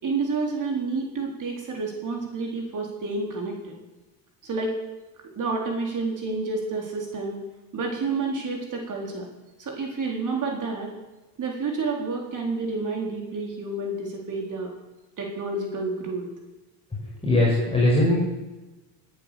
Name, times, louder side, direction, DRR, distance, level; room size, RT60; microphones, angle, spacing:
voice 1, 0.0-3.7 4.4-4.8 5.3-7.4 7.7-9.3 9.6-10.9 11.4-14.7 15.2-16.2, right 3 dB, 40° right, 0 dB, 4.2 m, -29 dB
voice 2, 17.2-18.2, left 1 dB, 10° left, -5 dB, 5.8 m, -20 dB
17.5 x 9.5 x 7.1 m, 1.1 s
supercardioid pair, 100°, 48 cm